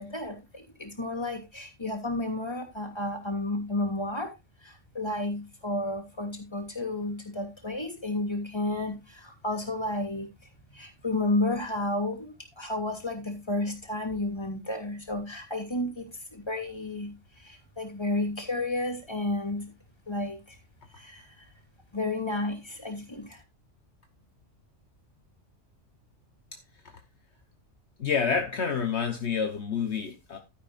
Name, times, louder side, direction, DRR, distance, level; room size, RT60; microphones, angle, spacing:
voice 1, 0.0-4.3 4.6-10.3 10.7-19.7 20.1-20.6 21.0-21.4 21.9-23.4, left 2 dB, 20° left, 2.9 m, -32 dB
voice 2, 28.0-30.4, left 6 dB, 65° left, 1.3 m, -28 dB
12.5 x 10.0 x 2.5 m
omnidirectional pair, 1.3 m